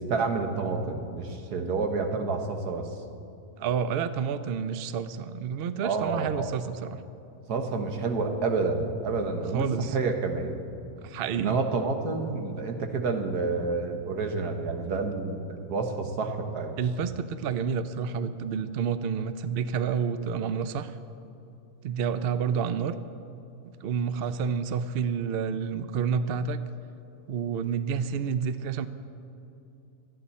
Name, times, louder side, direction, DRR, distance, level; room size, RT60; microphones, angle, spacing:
voice 1, 0.0-2.9 5.8-6.5 7.5-10.6 11.3-16.8, right 4 dB, 80° right, 4 dB, 1.8 m, -29 dB
voice 2, 3.6-7.0 9.5-10.0 11.0-11.6 16.8-21.0 21.8-23.0 23.8-26.6 27.3-28.9, right 6 dB, 65° right, 12 dB, 0.6 m, -29 dB
26.0 x 9.1 x 4.2 m, 2.8 s
omnidirectional pair, 1.6 m